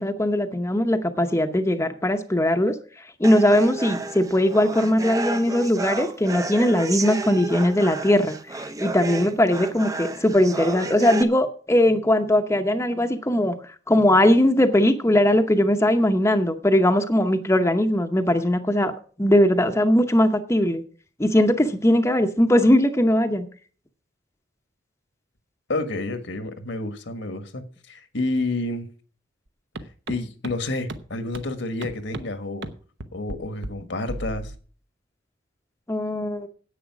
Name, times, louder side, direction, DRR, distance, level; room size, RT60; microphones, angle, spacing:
voice 1, 0.0-2.8 3.2-13.5 13.9-18.9 19.2-20.8 21.2-23.5 35.9-36.5, left 1 dB, 15° left, 0.8 m, -20 dB
sound 1, 3.2-11.2, right 3 dB, 20° right, 0.7 m, -31 dB
voice 2, 25.7-28.9 30.1-32.7 33.1-34.5, left 2 dB, 70° left, 1.5 m, -29 dB
sound 2, 29.7-29.8 30.1-30.2 30.4-30.5 30.9-31.0 31.3-31.4 31.8-32.2 32.6-32.7 33.0-33.4 33.6-33.7 34.1-34.6, right 2 dB, 65° right, 1.0 m, -33 dB
10.5 x 8.5 x 6.0 m
head